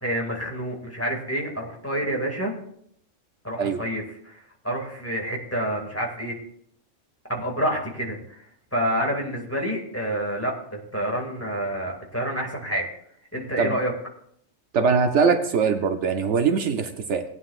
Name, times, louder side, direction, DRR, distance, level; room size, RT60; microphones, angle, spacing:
voice 1, 0.0-2.5 3.4-6.4 7.3-8.4 8.7-12.9 13.3-13.9, equal, 10° left, 0 dB, 2.1 m, -28 dB
voice 2, 14.7-17.2, right 5 dB, 65° right, 7 dB, 1.0 m, -22 dB
18.5 x 9.4 x 2.4 m, 0.68 s
omnidirectional pair, 1.3 m